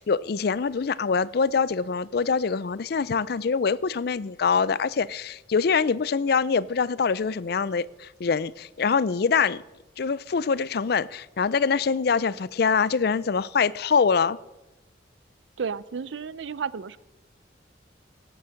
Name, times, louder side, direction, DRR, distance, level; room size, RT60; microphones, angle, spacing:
voice 1, 0.0-9.6 10.0-14.4, left 5 dB, 60° left, 0.4 m, -24 dB
voice 2, 15.6-17.0, right 6 dB, 85° right, 0.5 m, -32 dB
17.0 x 7.0 x 6.4 m
head